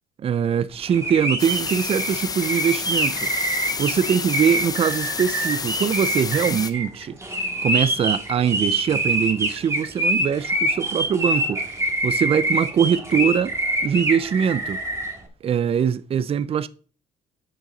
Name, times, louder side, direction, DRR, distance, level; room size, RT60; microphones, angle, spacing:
voice 1, 0.2-3.3 3.8-7.2 7.6-13.6 13.8-14.8 15.4-16.7, right 8 dB, 35° right, 0.5 m, -22 dB
sound 1, 0.9-15.1, right 1 dB, 15° right, 1.7 m, -25 dB
sound 2, 1.4-6.7, left 5 dB, 20° left, 0.5 m, -30 dB
8.5 x 6.0 x 3.9 m
cardioid pair, 110°, 17 cm